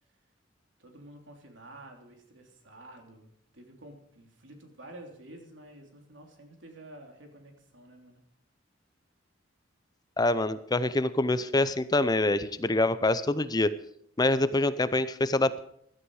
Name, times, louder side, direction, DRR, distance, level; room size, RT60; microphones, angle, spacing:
voice 1, 0.8-3.3 3.5-8.2, right 1 dB, 70° right, 3 dB, 3.3 m, -50 dB
voice 2, 10.2-13.7 14.2-15.6, left 2 dB, 20° left, 14 dB, 0.6 m, -25 dB
16.0 x 13.0 x 4.8 m, 0.70 s
head